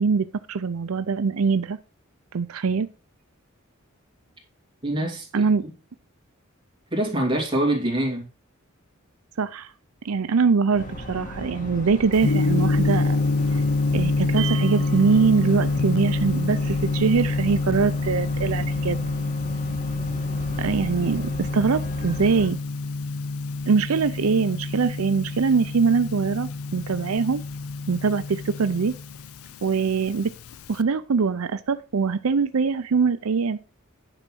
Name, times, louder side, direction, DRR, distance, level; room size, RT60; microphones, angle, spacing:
voice 1, 0.0-1.8 2.3-2.9 5.3-5.6 9.4-9.7 10.0-13.2 13.9-19.1 20.6-22.6 23.7-27.4 27.9-28.9 29.6-30.3 30.7-33.6, right 5 dB, 90° right, 0.5 m, -23 dB
voice 2, 4.8-5.7 6.9-8.2, right 1 dB, 25° right, 2.8 m, -25 dB
sound 1, 10.7-22.5, equal, 40° left, 2.1 m, -36 dB
Gong, 12.2-30.8, left 3 dB, 90° left, 0.5 m, -26 dB
sound 2, 14.4-24.7, right 10 dB, 75° right, 0.9 m, -44 dB
10.0 x 4.0 x 6.3 m
head